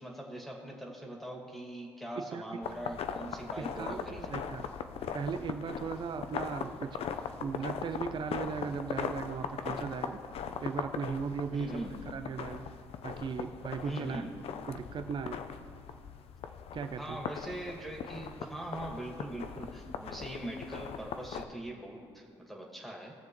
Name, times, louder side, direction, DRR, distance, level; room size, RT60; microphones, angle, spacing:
voice 1, 0.0-4.3 11.5-12.0 13.8-14.3 17.0-23.1, right 1 dB, ahead, -1 dB, 2.2 m, -41 dB
voice 2, 2.2-2.6 3.6-4.7 5.1-7.0 7.4-10.2 10.6-11.7 12.1-12.7 13.0-14.2 14.7-15.4 16.7-17.2, right 6 dB, 45° right, 9 dB, 0.6 m, -37 dB
sound 1, 2.6-21.4, left 7 dB, 60° left, 0.6 m, -40 dB
19.5 x 7.0 x 3.1 m, 2.3 s
supercardioid pair, 75°, 11 cm